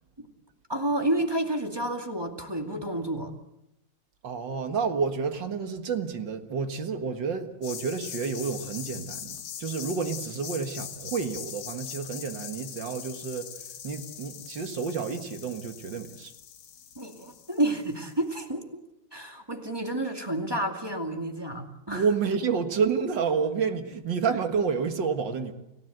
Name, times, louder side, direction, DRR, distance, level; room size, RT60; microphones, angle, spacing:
voice 1, 0.7-3.3 17.0-18.8 19.1-22.1, right 1 dB, 10° right, 2.2 m, -30 dB
voice 2, 4.2-13.6 13.8-16.3 21.9-25.5, right 5 dB, 60° right, 2.3 m, -29 dB
sound 1, 7.6-18.1, left 9 dB, 65° left, 1.8 m, -41 dB
29.5 x 17.0 x 8.0 m
omnidirectional pair, 2.3 m